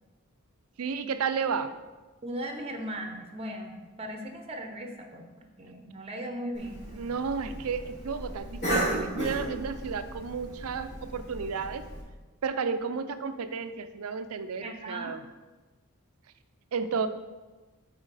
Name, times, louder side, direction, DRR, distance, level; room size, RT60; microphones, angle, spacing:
voice 1, 0.8-1.8 6.9-11.9 12.4-15.2 16.7-17.1, right 5 dB, 85° right, 11 dB, 0.5 m, -32 dB
voice 2, 2.2-5.2 5.6-6.9 14.6-15.2, right 1 dB, 30° right, 4 dB, 0.7 m, -38 dB
Cough, 6.5-12.0, right 1 dB, 55° left, 2.5 m, -35 dB
8.9 x 4.3 x 4.1 m, 1.2 s
head